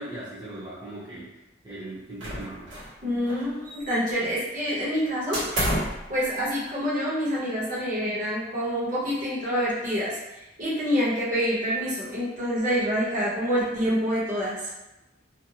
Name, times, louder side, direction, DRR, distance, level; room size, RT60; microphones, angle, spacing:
voice 1, 0.0-1.3 1.6-2.7, right 1 dB, 25° right, -12 dB, 0.7 m, -38 dB
sound 1, 2.2-3.0 3.2-4.2 5.3-6.1, equal, 80° right, 1.1 m, -29 dB
voice 2, 3.0-5.4 6.1-10.2 10.6-14.6, equal, 45° right, -7 dB, 0.9 m, -26 dB
2.5 x 2.0 x 2.7 m, 0.97 s
head